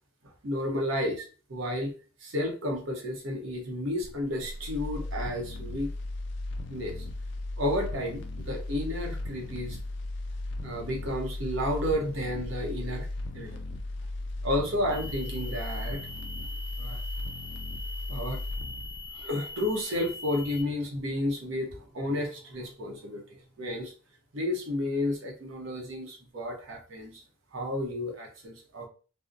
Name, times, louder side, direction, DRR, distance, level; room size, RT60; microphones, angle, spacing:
voice 1, 0.4-1.9 2.2-5.9 6.7-7.1 7.6-9.8 10.6-13.1 13.3-13.6 14.4-16.3 16.8-17.0 18.1-18.4 19.1-23.9 24.3-27.2 27.5-28.9, left 1 dB, 85° right, 1 dB, 0.8 m, -32 dB
sound 1, 4.0-20.1 20.4-20.5, left 2 dB, 60° left, 0.4 m, -36 dB
sound 2, 14.9-20.6, left 2 dB, 15° left, 0.6 m, -42 dB
2.7 x 2.0 x 2.4 m, 0.36 s
head